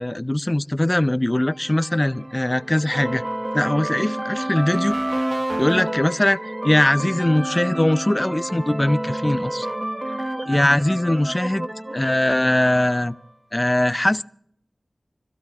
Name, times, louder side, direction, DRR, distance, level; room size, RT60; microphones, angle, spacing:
voice 1, 0.0-3.2 3.5-5.0 5.6-6.4 6.6-9.7 10.1-10.2 10.5-11.7 11.9-13.1 13.5-14.2, left 1 dB, 20° left, 14 dB, 0.5 m, -21 dB
sound 1, 1.4-13.1, right 1 dB, 25° right, 0.9 m, -29 dB
26.5 x 15.5 x 2.4 m, 0.69 s
wide cardioid pair, 70°, 0 cm